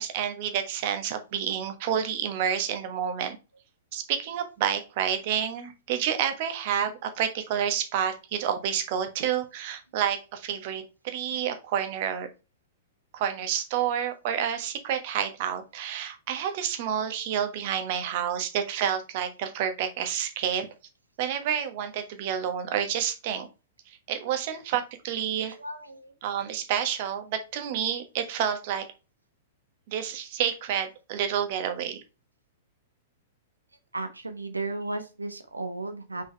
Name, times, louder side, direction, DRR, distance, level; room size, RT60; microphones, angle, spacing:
voice 1, 0.0-3.4 3.9-12.3 13.1-20.7 21.2-23.5 24.1-25.6 26.2-28.8 29.9-32.0, right 9 dB, 45° right, 8 dB, 1.3 m, -29 dB
voice 2, 25.3-26.1 33.9-36.3, right 2 dB, 85° right, 7 dB, 1.1 m, -35 dB
5.6 x 5.0 x 3.3 m, 0.29 s
figure-of-eight pair, 105°, 0 cm